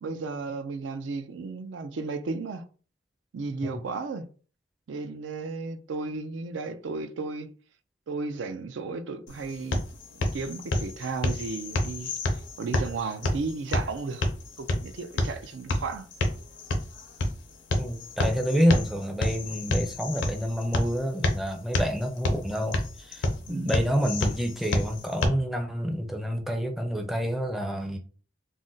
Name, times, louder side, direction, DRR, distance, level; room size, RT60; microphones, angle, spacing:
voice 1, 0.0-2.6 3.3-4.3 4.9-7.5 8.1-9.9 10.1-12.1 12.6-14.3 14.6-16.1 23.5-23.8, right 4 dB, 80° right, 0.4 m, -34 dB
sound 1, 9.3-25.3, left 1 dB, 75° left, 0.5 m, -30 dB
voice 2, 17.8-28.0, equal, ahead, 0.4 m, -28 dB
2.5 x 2.1 x 3.7 m
head